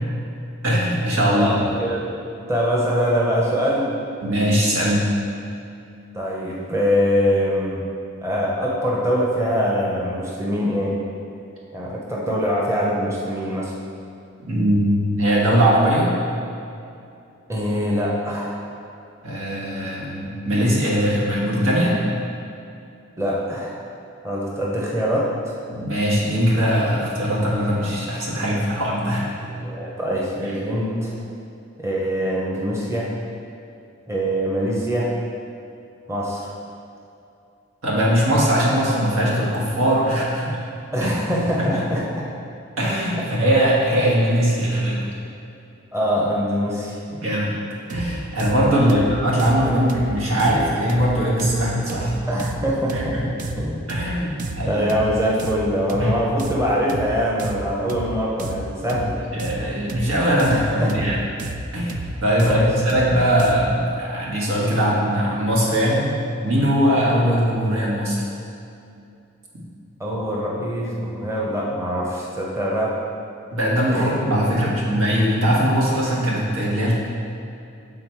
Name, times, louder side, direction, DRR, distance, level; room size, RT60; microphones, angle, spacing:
voice 1, 0.6-1.5 4.2-5.1 14.5-16.1 19.2-22.0 25.7-29.3 37.8-40.6 41.0-41.1 41.6-41.8 42.8-45.1 47.1-47.6 47.9-52.2 52.9-53.3 53.9-54.9 56.0-56.1 59.3-61.2 61.7-61.9 62.2-66.1 66.4-68.2 73.5-76.9, equal, 85° right, -5 dB, 1.5 m, -20 dB
voice 2, 1.3-2.1 2.5-4.2 6.1-7.8 8.2-11.0 11.7-13.7 17.5-18.6 23.2-23.8 24.2-25.6 29.3-31.1 31.8-33.1 34.1-35.2 36.1-36.5 40.9-42.0 45.9-47.0 48.9-49.0 52.3-53.8 54.2-54.3 54.6-59.2 60.4-60.9 62.4-62.7 70.0-73.0 73.9-74.1, equal, 15° right, -5 dB, 0.8 m, -23 dB
sound 1, 47.9-63.8, right 2 dB, 40° right, 0.4 m, -32 dB
7.4 x 3.9 x 4.5 m, 2.6 s
head